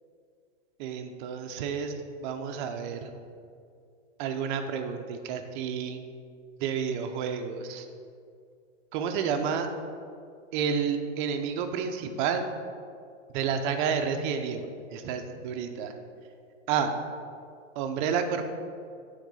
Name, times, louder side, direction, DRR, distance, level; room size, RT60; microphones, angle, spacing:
voice 1, 0.8-1.9 2.2-3.1 4.2-6.0 6.6-7.9 8.9-9.7 10.5-12.5 13.3-15.9 16.7-16.9 17.7-18.5, right 7 dB, 40° right, 6 dB, 0.8 m, -30 dB
9.2 x 3.9 x 5.4 m, 2.3 s
hypercardioid pair, 130°, 36 cm